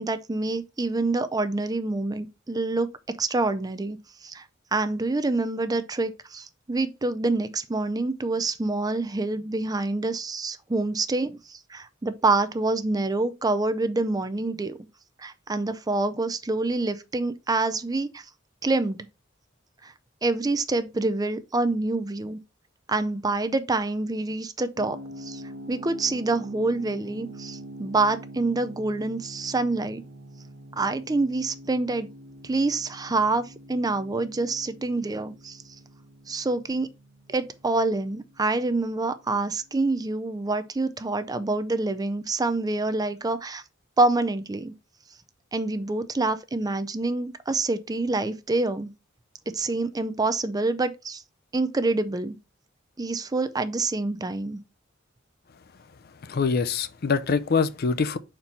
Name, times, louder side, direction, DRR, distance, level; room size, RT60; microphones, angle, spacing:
voice 1, 0.0-4.4 4.7-14.8 15.2-18.2 18.6-19.0 19.8-19.9 20.2-22.4 22.9-30.0 30.8-32.1 32.4-35.6 36.3-36.9 37.3-43.6 44.0-44.7 45.5-48.9 49.5-51.2 51.5-52.4 53.0-54.6, right 2 dB, 20° right, 0.5 m, -26 dB
sound 1, 24.8-39.5, right 1 dB, 70° right, 1.1 m, -45 dB
voice 2, 56.2-58.2, left 5 dB, 50° left, 0.5 m, -24 dB
5.4 x 4.4 x 4.3 m
head